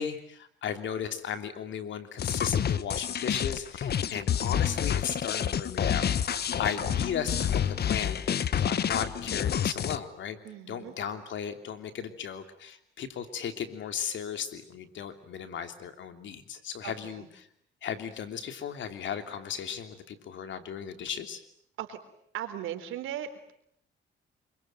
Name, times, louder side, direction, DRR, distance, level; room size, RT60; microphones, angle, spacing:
voice 1, 0.0-8.2 8.6-10.4 10.7-17.5 17.8-21.4, left 8 dB, 70° left, 9 dB, 3.2 m, -36 dB
sound 1, 2.2-10.0, left 9 dB, 55° left, 1.3 m, -28 dB
voice 2, 6.7-7.1 10.4-10.9 16.8-17.3 21.8-22.0 22.3-23.5, right 11 dB, 85° right, 8 dB, 3.9 m, -38 dB
26.5 x 23.5 x 9.2 m, 0.70 s
cardioid pair, 90°, 20 cm